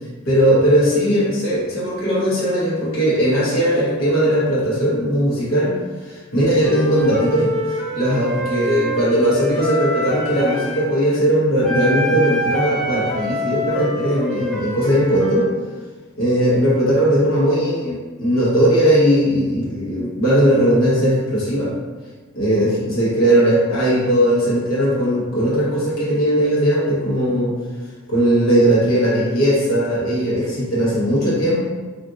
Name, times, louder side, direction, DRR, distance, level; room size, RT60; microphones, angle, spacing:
voice 1, 0.3-5.8 6.0-15.5 16.2-21.7 22.3-27.5 28.1-31.6, equal, 80° left, -7 dB, 1.0 m, -18 dB
Wind instrument woodwind instrument, 6.6-10.9 11.6-15.5, equal, ahead, 0.3 m, -26 dB
3.8 x 2.5 x 2.4 m, 1.4 s
head